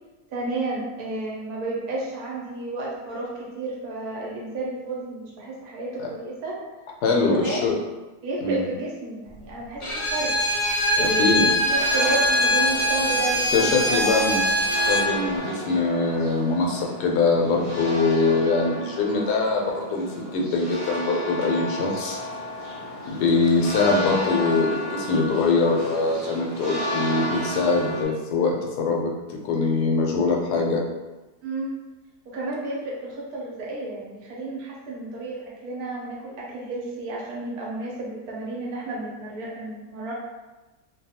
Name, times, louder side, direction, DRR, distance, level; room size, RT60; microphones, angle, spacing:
voice 1, 0.3-6.6 7.2-7.8 8.2-9.8 10.1-10.4 11.0-14.0 31.4-31.7 32.3-40.1, right 2 dB, 70° right, -4 dB, 1.1 m, -31 dB
voice 2, 7.0-7.7 8.4-8.6 11.0-11.5 13.5-14.4 14.9-22.2 23.1-30.8, left 3 dB, 80° left, 0 dB, 1.1 m, -23 dB
Bowed string instrument, 9.8-15.1, equal, 60° left, 0.9 m, -22 dB
sound 1, 11.7-28.0, equal, 35° right, 0.5 m, -33 dB
2.6 x 2.2 x 2.7 m, 1.1 s
omnidirectional pair, 1.7 m